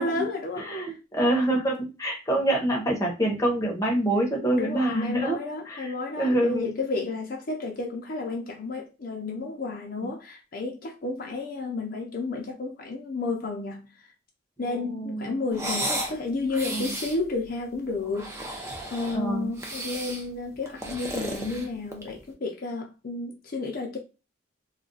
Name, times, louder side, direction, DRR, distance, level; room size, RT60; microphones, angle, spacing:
voice 1, 0.0-0.9 4.6-13.9 14.6-18.6 18.9-24.0, left 3 dB, 50° left, 0.6 m, -32 dB
voice 2, 0.5-5.4 5.7-6.7 10.0-10.1 14.7-15.4 16.7-16.9 19.1-19.5, right 1 dB, 15° left, 0.8 m, -26 dB
sound 1, 15.5-16.2 16.5-17.2 18.0-19.2 19.6-20.2 20.7-22.2, right 1 dB, 15° right, 0.6 m, -33 dB
2.4 x 2.2 x 3.9 m
head